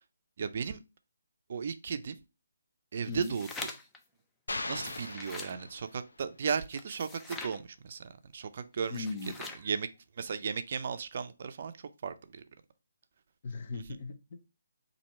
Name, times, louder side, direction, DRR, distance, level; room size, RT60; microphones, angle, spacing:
voice 1, 0.4-0.8 1.5-2.2 2.9-3.7 4.7-9.1 9.6-9.9 10.2-12.4 13.7-13.8, right 6 dB, 50° right, 0.4 m, -35 dB
sound 1, 3.0-4.0 4.7-5.6 6.7-7.6 8.8-9.7, left 3 dB, 10° left, 0.4 m, -44 dB
voice 2, 3.1-3.4 8.9-9.4 13.4-14.5, left 3 dB, 45° left, 0.8 m, -38 dB
sound 2, 4.5-6.2, left 2 dB, 80° left, 0.6 m, -39 dB
4.3 x 2.7 x 4.2 m
figure-of-eight pair, 150°, 0 cm